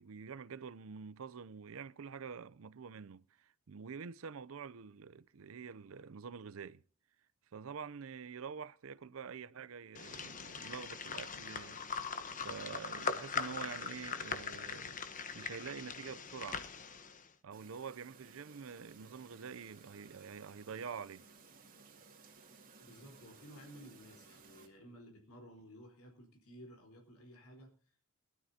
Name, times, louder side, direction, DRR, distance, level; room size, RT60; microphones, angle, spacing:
voice 1, 0.0-6.8 7.5-16.7 17.4-21.2, right 6 dB, 65° right, 0.5 m, -47 dB
sound 1, 9.9-17.2, left 5 dB, 35° left, 1.0 m, -41 dB
Chirp tweet, 17.5-24.7, right 4 dB, 40° right, 2.2 m, -59 dB
voice 2, 22.8-28.2, equal, 80° left, 4.0 m, -55 dB
20.5 x 12.5 x 2.8 m
head